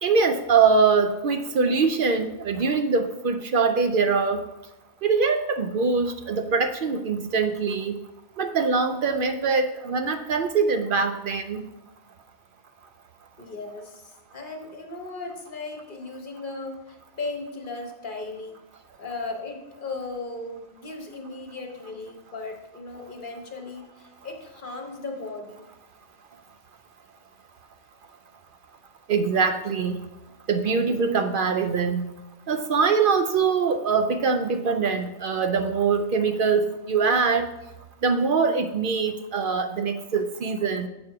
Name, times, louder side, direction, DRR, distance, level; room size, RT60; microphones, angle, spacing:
voice 1, 0.0-4.4 5.0-8.0 8.4-11.6 29.1-30.0 30.5-32.1 32.5-37.5 38.0-40.9, right 5 dB, 65° right, 8 dB, 0.5 m, -23 dB
voice 2, 13.4-18.6 19.0-25.7, left 3 dB, 40° left, 3 dB, 1.0 m, -36 dB
7.9 x 6.2 x 4.7 m, 0.97 s
omnidirectional pair, 1.5 m